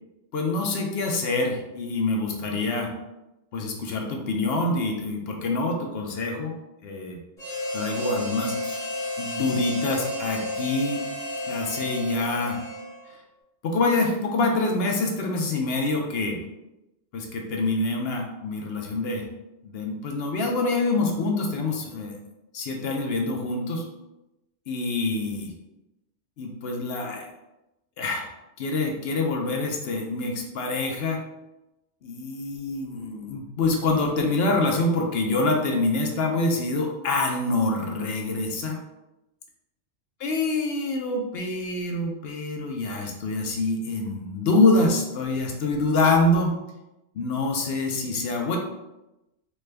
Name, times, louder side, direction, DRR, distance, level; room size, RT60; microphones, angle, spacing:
voice 1, 0.3-2.9 3.5-6.5 6.8-7.2 7.7-8.8 9.2-11.1 11.5-12.6 13.1-13.2 13.6-16.4 17.1-19.3 19.6-22.1 22.5-23.8 24.7-25.5 26.4-27.3 28.0-28.3 28.6-31.2 32.0-38.8 40.2-46.6 47.1-48.6, left 2 dB, 65° left, 1 dB, 0.8 m, -26 dB
Harmonica, 7.4-13.2, left 1 dB, 5° left, 1.0 m, -32 dB
3.3 x 2.2 x 3.3 m, 0.95 s
omnidirectional pair, 1.2 m